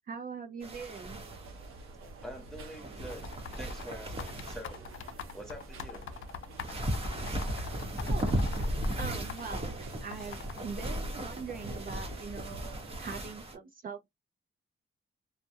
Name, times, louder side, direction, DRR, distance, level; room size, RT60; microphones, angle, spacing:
voice 1, 0.1-1.2 8.0-8.4 9.0-12.7 13.0-14.1, right 5 dB, 45° right, 0.4 m, -42 dB
sound 1, 0.6-13.5, equal, 30° right, 0.8 m, -36 dB
sound 2, 1.0-13.1, right 3 dB, 85° right, 0.7 m, -48 dB
voice 2, 2.2-3.3 3.6-4.9 5.3-6.1 10.2-10.3, equal, ahead, 0.7 m, -46 dB
sound 3, 3.1-9.6 10.1-10.8, left 7 dB, 70° left, 0.4 m, -43 dB
2.3 x 2.0 x 2.6 m
wide cardioid pair, 125°, 21 cm